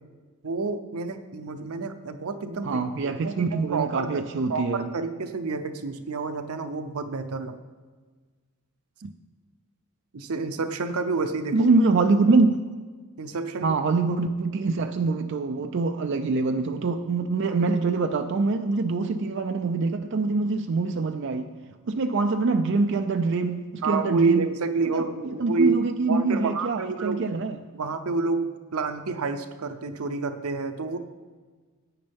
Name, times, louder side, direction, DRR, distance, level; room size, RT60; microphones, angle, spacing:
voice 1, 0.4-4.2 4.5-7.6 10.1-11.7 13.2-13.7 23.8-27.2 27.7-31.0, right 4 dB, 85° right, 8 dB, 0.7 m, -28 dB
voice 2, 2.6-4.9 9.0-9.1 11.5-12.6 13.6-21.5 21.9-24.5 24.9-27.6, right 3 dB, 55° right, 6 dB, 0.4 m, -24 dB
16.0 x 8.8 x 3.5 m, 1.4 s
head